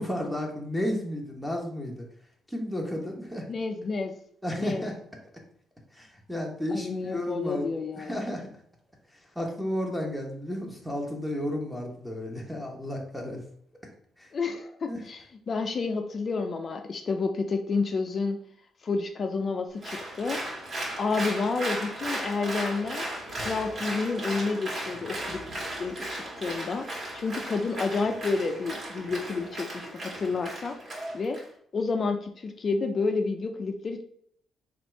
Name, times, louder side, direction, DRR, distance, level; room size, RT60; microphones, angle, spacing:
voice 1, 0.0-2.0 2.5-3.4 4.4-4.9 6.0-7.7 8.0-8.5 9.3-13.4 14.2-14.3 14.9-15.0, left 1 dB, ahead, 0 dB, 1.1 m, -32 dB
voice 2, 3.5-4.1 4.6-4.9 6.7-8.2 14.3-18.4 18.8-20.4 21.0-23.0 23.4-25.4 25.8-30.8 31.1-31.4 31.7-34.0, left 4 dB, 45° left, 5 dB, 0.5 m, -30 dB
Applause, 19.8-31.4, right 1 dB, 45° right, 1.9 m, -36 dB
4.2 x 2.5 x 4.5 m, 0.65 s
cardioid pair, 90°, 0 cm